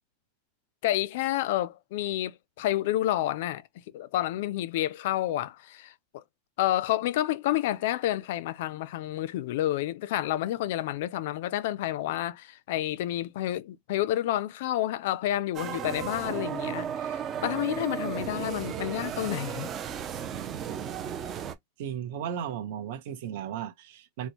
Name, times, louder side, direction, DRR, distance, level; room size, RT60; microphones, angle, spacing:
voice 1, 0.8-3.6 3.9-6.2 6.6-19.7, left 14 dB, 55° left, 0.4 m, -29 dB
sound 1, 15.6-21.6, right 8 dB, 20° right, 0.4 m, -34 dB
voice 2, 21.8-24.3, right 9 dB, 50° right, 0.9 m, -35 dB
4.2 x 2.0 x 2.9 m
supercardioid pair, 175°, 0 cm